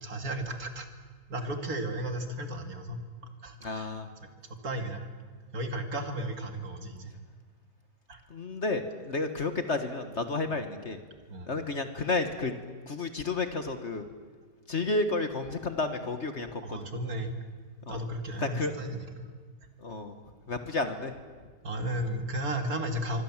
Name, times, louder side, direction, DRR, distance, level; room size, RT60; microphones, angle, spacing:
voice 1, 0.0-0.9 1.3-3.0 3.4-3.9 4.6-5.0 5.5-7.1 8.1-8.2 11.3-11.5 16.6-17.3 17.9-19.3 21.6-23.2, right 1 dB, 55° right, 6 dB, 2.6 m, -34 dB
voice 2, 3.6-4.1 8.3-11.0 11.5-12.5 12.9-14.1 14.7-16.8 17.9-18.1 18.4-18.7 19.8-20.2 20.5-21.1, left 3 dB, 40° left, 8 dB, 1.6 m, -31 dB
26.0 x 24.0 x 7.4 m, 1.5 s
omnidirectional pair, 1.8 m